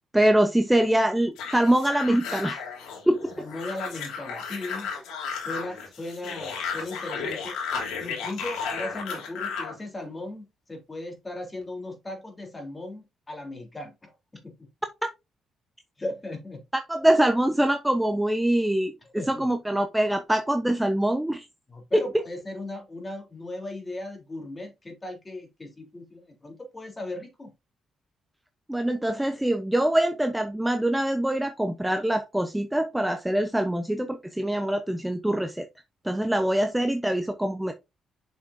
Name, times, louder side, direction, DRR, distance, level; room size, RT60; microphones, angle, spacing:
voice 1, 0.1-2.6 3.1-3.3 16.7-18.9 19.3-21.4 28.7-35.6 36.0-37.7, right 1 dB, 5° right, 0.9 m, -24 dB
sound 1, 1.4-9.8, left 5 dB, 90° left, 3.0 m, -34 dB
voice 2, 3.4-4.9 5.5-7.6 8.0-14.7 16.0-16.6 19.1-19.5 21.7-27.5, left 2 dB, 20° left, 3.4 m, -37 dB
7.1 x 6.1 x 2.6 m
cardioid pair, 90°, 0 cm